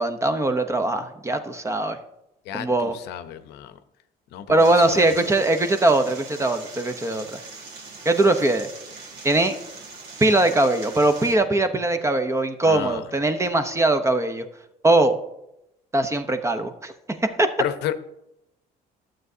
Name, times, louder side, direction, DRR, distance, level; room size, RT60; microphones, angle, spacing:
voice 1, 0.0-2.0 2.5-3.0 4.5-7.4 8.0-8.7 9.2-9.5 10.2-14.4 14.8-15.2 15.9-16.9 17.2-17.5, right 2 dB, 15° right, 9 dB, 0.8 m, -21 dB
voice 2, 2.5-3.8 4.3-5.3 12.6-13.0 17.6-17.9, left 11 dB, 80° left, 11 dB, 0.7 m, -32 dB
sound 1, 4.6-11.3, right 4 dB, 80° right, 1.8 m, -41 dB
12.0 x 7.7 x 2.7 m, 0.84 s
cardioid pair, 110°, 17 cm